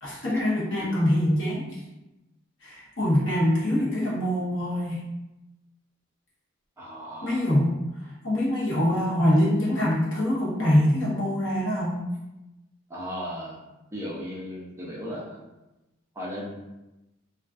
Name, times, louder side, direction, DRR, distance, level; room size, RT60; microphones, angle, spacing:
voice 1, 0.0-1.7 2.6-5.0 7.2-7.8 8.2-12.1, left 1 dB, 60° left, -6 dB, 0.8 m, -24 dB
voice 2, 6.8-7.4 12.9-13.6 13.9-15.4 16.2-16.7, equal, 15° right, -6 dB, 0.4 m, -36 dB
2.4 x 2.3 x 2.3 m, 0.98 s
head